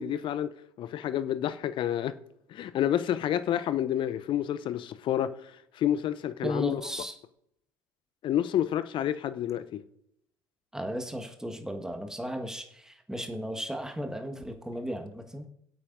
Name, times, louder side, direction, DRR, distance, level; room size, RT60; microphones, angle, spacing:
voice 1, 0.0-2.1 2.5-5.3 5.8-6.8 8.2-9.8, left 11 dB, 45° left, 0.7 m, -29 dB
voice 2, 6.4-7.2 10.7-15.5, equal, 5° right, 1.6 m, -35 dB
21.0 x 8.4 x 2.7 m
figure-of-eight pair, 60°, 11 cm